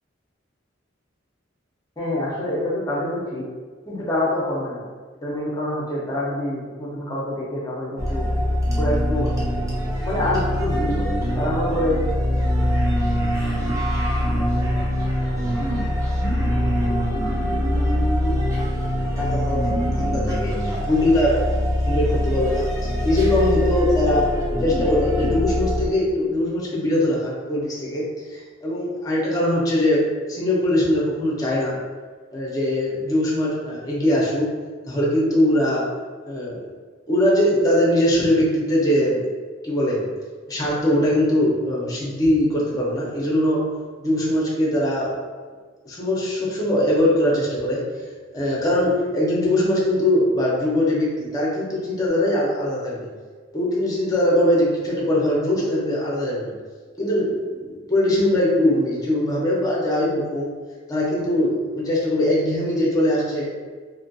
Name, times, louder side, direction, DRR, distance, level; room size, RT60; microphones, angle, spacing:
voice 1, 2.0-3.5 3.9-4.8 5.2-8.3 8.8-9.3 9.7-12.0 17.7-17.9 19.2-21.5 21.9-22.7 23.0-24.2 24.6-31.8 32.3-34.5 34.9-35.8 36.3-36.7 37.1-39.2 39.6-40.0 40.5-43.6 44.0-45.1 45.8-47.8 48.3-53.1 53.5-56.5 57.0-60.5 60.9-63.5, left 1 dB, 20° left, -5 dB, 0.7 m, -22 dB
sound 1, 8.0-25.9, equal, 15° right, 0.5 m, -23 dB
2.6 x 2.4 x 2.6 m, 1.5 s
head